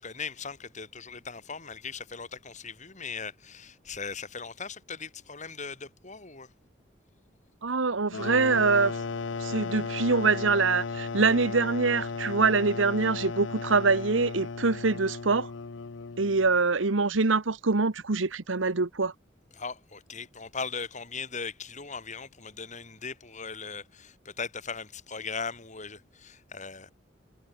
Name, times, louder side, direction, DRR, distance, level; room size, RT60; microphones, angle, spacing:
voice 1, 0.0-6.5 19.6-26.9, left 5 dB, 40° left, 5.0 m, -39 dB
voice 2, 7.6-9.0 9.4-15.5 16.2-19.1, right 4 dB, 85° right, 1.2 m, -24 dB
sound 1, 8.1-16.6, left 4 dB, 70° left, 0.7 m, -35 dB
head